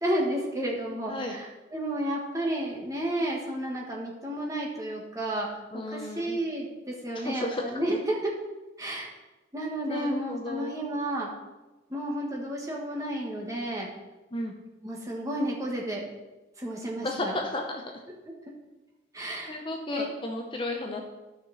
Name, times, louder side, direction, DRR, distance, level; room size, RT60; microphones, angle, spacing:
voice 1, 0.0-5.5 5.9-7.4 7.7-8.3 8.8-9.1 9.5-11.3 11.9-13.9 14.8-16.1 16.6-17.3 19.1-19.6 19.9-20.1, right 1 dB, 15° right, -2 dB, 1.5 m, -31 dB
voice 2, 5.7-6.4 7.1-7.6 7.9-8.0 9.9-10.8 14.3-14.5 17.0-17.8 19.5-21.0, left 1 dB, 25° left, 2 dB, 0.7 m, -33 dB
12.5 x 5.7 x 4.1 m, 1.1 s
head